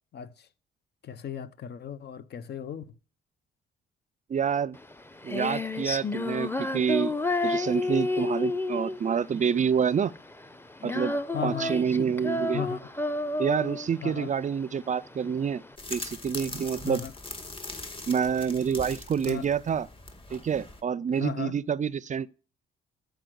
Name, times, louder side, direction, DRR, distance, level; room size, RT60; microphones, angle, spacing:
voice 1, 0.1-0.5 1.0-2.9 11.3-11.8 12.5-12.8 14.0-14.3 16.8-17.1 19.2-19.5 21.1-21.6, left 8 dB, 55° left, 1.0 m, -36 dB
voice 2, 4.3-4.8 5.2-7.1 7.4-10.1 10.8-12.6 13.4-15.6 15.9-17.0 18.1-19.9 20.3-22.3, right 7 dB, 40° right, 0.5 m, -27 dB
Female singing, 4.8-15.7, left 2 dB, 10° left, 0.9 m, -31 dB
sound 1, 15.8-20.8, left 2 dB, 25° left, 2.2 m, -41 dB
13.5 x 5.2 x 6.4 m
cardioid pair, 90°, 20 cm